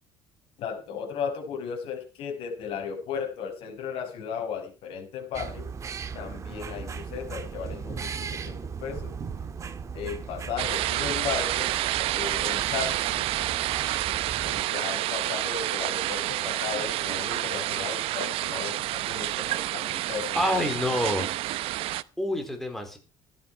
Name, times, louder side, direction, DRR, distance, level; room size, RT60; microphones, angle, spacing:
voice 1, 0.6-5.7 6.1-9.2 9.9-11.7 12.1-13.4 14.4-20.7, left 7 dB, 70° left, 3 dB, 6.0 m, -35 dB
sound 1, 5.3-14.6, right 6 dB, 30° right, 1.6 m, -37 dB
sound 2, 10.6-22.0, right 16 dB, 75° right, 0.7 m, -29 dB
voice 2, 20.3-21.3 22.2-23.0, left 1 dB, 5° left, 5 dB, 4.1 m, -27 dB
15.5 x 11.5 x 4.7 m, 0.33 s
cardioid pair, 145°, 10 cm